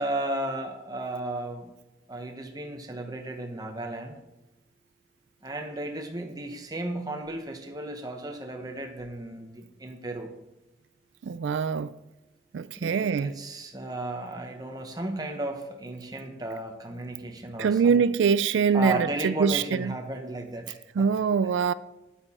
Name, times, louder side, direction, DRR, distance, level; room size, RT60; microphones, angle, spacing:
voice 1, 0.0-1.7 2.1-4.2 5.4-10.3 12.8-18.0 18.7-21.1, right 1 dB, 20° right, 1.0 m, -34 dB
voice 2, 11.2-11.9 12.5-13.3 17.6-19.9 21.0-21.7, right 6 dB, 85° right, 0.3 m, -24 dB
9.1 x 8.7 x 4.3 m
head